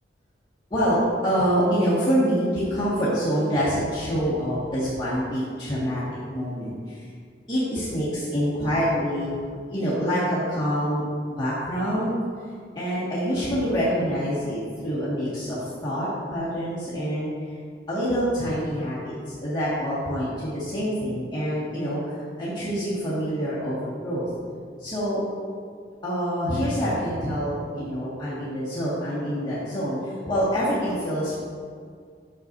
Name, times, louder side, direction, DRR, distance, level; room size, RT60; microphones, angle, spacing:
voice 1, 0.7-6.0 6.3-7.1 7.5-9.4 9.7-11.0 11.4-12.2 12.8-17.3 17.9-24.3 24.8-25.2 26.0-31.4, equal, 25° left, -11 dB, 1.9 m, -26 dB
11.5 x 6.7 x 2.7 m, 2.1 s
head